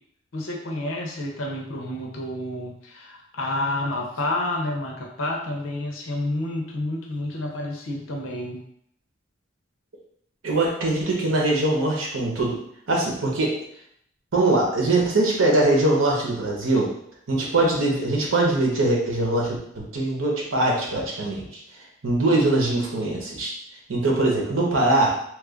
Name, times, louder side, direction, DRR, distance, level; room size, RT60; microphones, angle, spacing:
voice 1, 0.3-8.6, left 1 dB, 75° left, 0 dB, 0.7 m, -29 dB
voice 2, 10.4-12.6 12.9-13.5 14.3-16.9 17.3-21.4 22.0-23.5 23.9-25.2, right 2 dB, 85° right, -2 dB, 0.9 m, -22 dB
3.1 x 2.4 x 3.6 m, 0.71 s
head